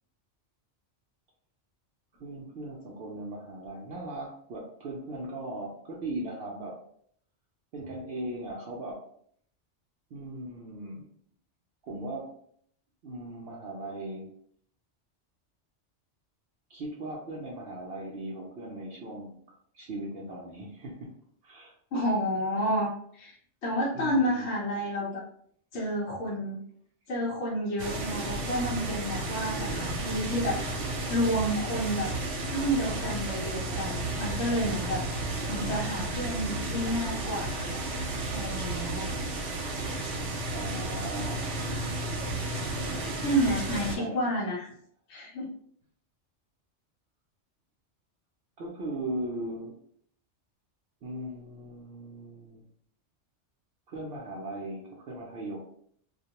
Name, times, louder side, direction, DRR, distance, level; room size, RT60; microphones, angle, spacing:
voice 1, 2.2-6.7 7.7-9.0 10.1-11.1 11.8-12.3 13.0-14.3 16.7-19.3 19.7-21.1 21.4-21.7 23.9-24.5 40.5-41.6 43.9-44.3 48.6-49.7 51.0-52.7 53.9-55.6, right 1 dB, 65° right, -2 dB, 0.7 m, -38 dB
voice 2, 21.9-23.4 23.6-25.2 25.7-26.6 27.1-35.0 35.5-37.8 38.3-39.1 43.2-44.7 45.1-45.5, equal, 70° left, -5 dB, 0.9 m, -30 dB
sound 1, 27.8-44.0, right 2 dB, 85° right, 0.9 m, -33 dB
2.4 x 2.2 x 2.8 m, 0.64 s
omnidirectional pair, 1.2 m